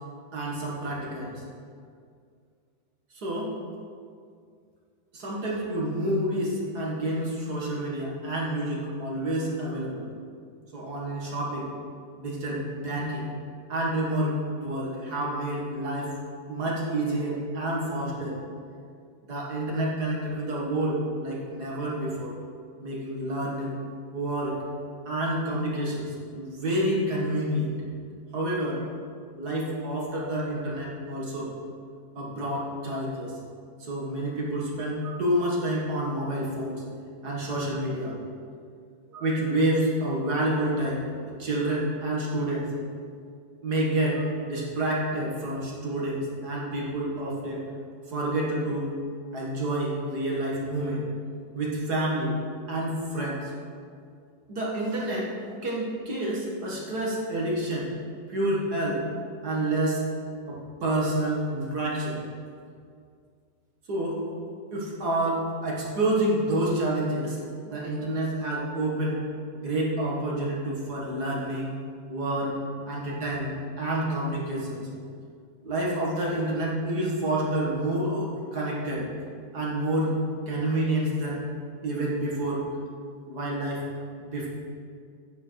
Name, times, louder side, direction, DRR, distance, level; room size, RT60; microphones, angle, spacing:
voice 1, 0.3-1.3 3.1-3.5 5.1-10.1 10.7-11.7 12.2-13.3 13.7-16.1 16.5-18.4 19.3-22.4 22.8-23.7 24.1-24.6 25.1-27.7 28.3-28.8 29.4-31.5 32.2-33.3 33.8-36.8 37.2-38.1 39.1-42.7 43.6-47.6 48.1-48.9 49.3-51.1 51.5-52.4 52.7-53.5 54.5-55.3 55.6-57.9 58.3-59.1 59.4-60.0 60.5-62.2 63.9-64.2 64.7-69.2 69.5-71.7 72.1-72.5 72.9-74.9 75.6-79.1 79.5-80.1 80.5-81.4 81.8-82.6 83.3-83.9 84.2-84.5, right 1 dB, 55° right, -4 dB, 2.2 m, -28 dB
9.7 x 9.2 x 4.6 m, 2.2 s
omnidirectional pair, 2.1 m